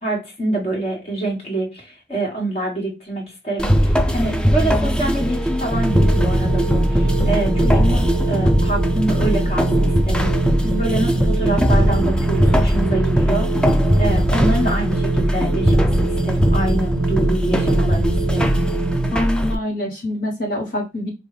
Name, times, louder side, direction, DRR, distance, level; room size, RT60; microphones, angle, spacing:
voice 1, 0.0-10.3 10.6-18.6, right 1 dB, 35° left, -1 dB, 1.6 m, -26 dB
sound 1, 3.6-19.5, equal, 5° left, 0.4 m, -19 dB
sound 2, 3.8-13.4, right 1 dB, 10° right, 1.2 m, -35 dB
sound 3, 5.7-19.1, right 2 dB, 45° right, 0.5 m, -24 dB
voice 2, 19.1-21.1, left 1 dB, 55° left, -2 dB, 1.1 m, -25 dB
5.3 x 2.3 x 3.1 m, 0.27 s
head